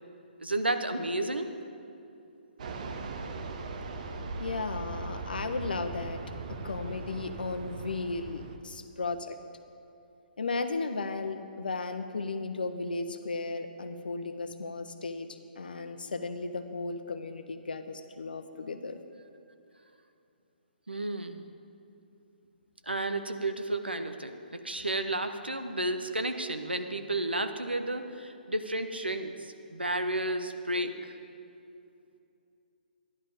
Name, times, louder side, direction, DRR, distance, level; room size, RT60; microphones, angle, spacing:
voice 1, 0.4-1.5 20.9-21.4 22.8-31.2, right 1 dB, 80° right, 8 dB, 0.9 m, -32 dB
Fixed-wing aircraft airplane, 2.6-8.6, right 3 dB, 45° right, 0.9 m, -39 dB
voice 2, 4.4-6.2 6.6-9.4 10.4-15.3 15.6-19.0, left 3 dB, 65° left, 9 dB, 0.9 m, -35 dB
13.0 x 11.0 x 5.1 m, 2.7 s
figure-of-eight pair, 130°, 5 cm